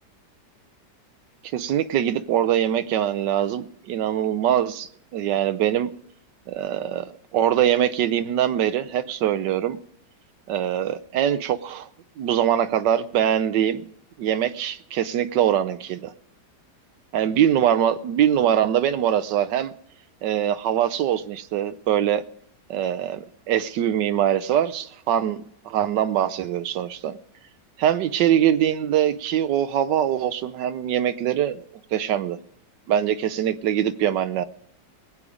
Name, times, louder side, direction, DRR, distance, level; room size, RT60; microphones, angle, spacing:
voice 1, 1.5-5.9 6.5-9.8 10.5-11.9 12.2-13.8 14.2-16.1 17.1-19.7 20.2-22.2 22.7-25.4 25.6-27.2 27.8-31.6 31.9-32.4 32.9-34.4, right 10 dB, 85° right, 1.4 m, -23 dB
20.5 x 8.5 x 5.0 m
omnidirectional pair, 1.9 m